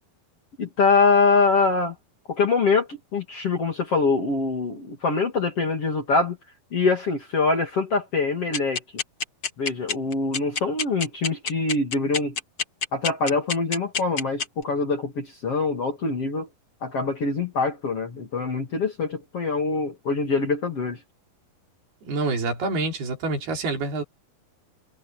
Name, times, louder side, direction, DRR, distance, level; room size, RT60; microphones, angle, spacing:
voice 1, 0.6-1.9 2.3-6.4 6.7-8.8 9.6-12.4 12.9-16.5 16.8-21.0, left 4 dB, 40° left, 3.2 m, -24 dB
sound 1, 8.5-14.6, left 5 dB, 85° left, 0.8 m, -26 dB
voice 2, 22.1-24.0, right 3 dB, 70° right, 6.8 m, -27 dB
omnidirectional pair, 4.6 m